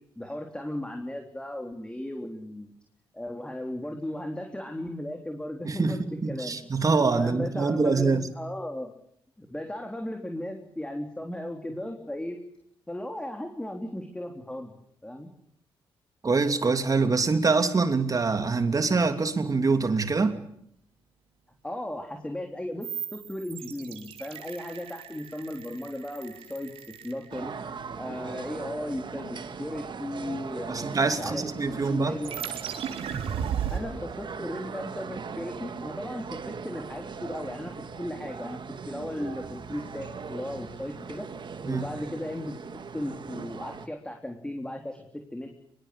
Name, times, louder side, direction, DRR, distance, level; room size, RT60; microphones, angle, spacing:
voice 1, 0.2-2.7 3.1-6.0 6.3-6.6 7.2-8.1 8.4-8.9 9.4-12.4 12.9-14.7 15.0-15.3 21.6-27.5 28.0-32.4 33.7-41.3 41.6-45.5, left 1 dB, 10° left, 3.8 m, -36 dB
voice 2, 5.6-8.3 16.2-20.4 30.7-32.2 41.6-41.9, right 4 dB, 40° right, 3.0 m, -25 dB
sound 1, 22.8-27.8 32.2-33.8, right 8 dB, 85° right, 3.5 m, -36 dB
sound 2, 27.3-43.9, right 5 dB, 55° right, 2.0 m, -39 dB
24.0 x 22.5 x 8.6 m
cardioid pair, 80°, 10 cm